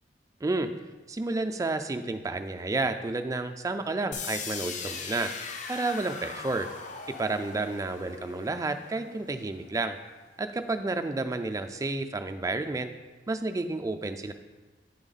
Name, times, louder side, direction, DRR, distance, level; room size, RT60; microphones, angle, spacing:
voice 1, 1.1-5.3 5.7-6.7 7.2-10.0 10.4-12.9 13.3-14.3, right 2 dB, 20° right, 7 dB, 0.3 m, -30 dB
sound 1, 4.1-10.0, left 5 dB, 45° left, 0.5 m, -40 dB
9.0 x 3.5 x 4.0 m, 1.3 s
head